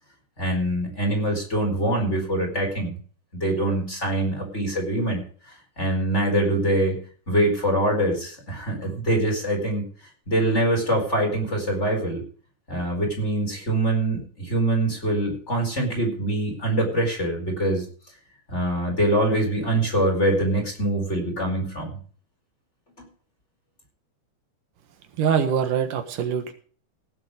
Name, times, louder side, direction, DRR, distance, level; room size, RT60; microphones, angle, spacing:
voice 1, 0.4-3.0 3.3-5.2 5.8-7.0 7.3-9.8 10.3-12.2 12.7-17.8 18.5-22.0 23.0-23.1, right 1 dB, 20° left, 1 dB, 4.7 m, -24 dB
voice 2, 25.2-26.5, right 7 dB, 85° right, 7 dB, 3.1 m, -23 dB
18.0 x 7.9 x 5.1 m, 0.43 s
omnidirectional pair, 3.7 m